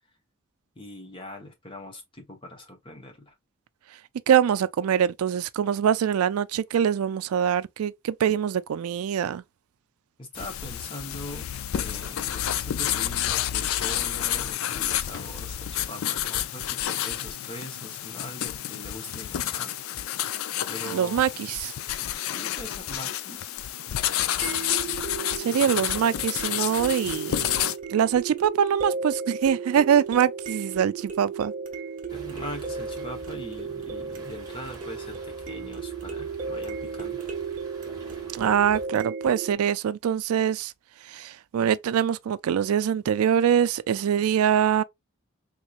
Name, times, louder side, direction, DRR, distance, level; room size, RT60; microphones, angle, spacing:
voice 1, 0.7-3.3 10.2-11.5 11.8-19.7 20.7-21.2 22.2-23.6 32.1-37.2, left 1 dB, 25° left, 0.9 m, -41 dB
voice 2, 4.3-9.4 20.9-21.7 25.4-27.5 27.9-31.5 38.3-40.7 41.0-44.8, right 8 dB, 90° right, 0.3 m, -24 dB
sound 1, 10.4-27.8, left 11 dB, 75° left, 0.3 m, -30 dB
sound 2, 19.7-19.8 24.4-39.5, right 5 dB, 40° right, 0.8 m, -35 dB
sound 3, 32.1-38.9, right 2 dB, 20° right, 1.1 m, -47 dB
3.6 x 3.0 x 2.4 m
head